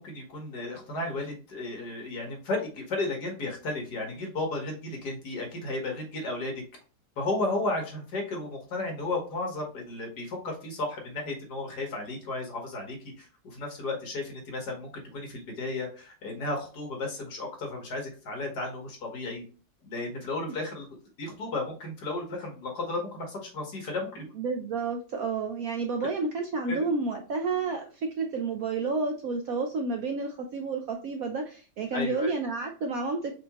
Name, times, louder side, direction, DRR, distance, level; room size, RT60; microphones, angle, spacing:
voice 1, 0.0-6.6 7.2-19.4 19.8-20.9 21.2-24.2 26.7-26.8 31.9-32.3, left 2 dB, 60° left, 1 dB, 1.8 m, -34 dB
voice 2, 24.4-33.3, right 4 dB, 65° right, 3 dB, 0.9 m, -30 dB
5.0 x 3.5 x 2.9 m, 0.38 s
omnidirectional pair, 2.1 m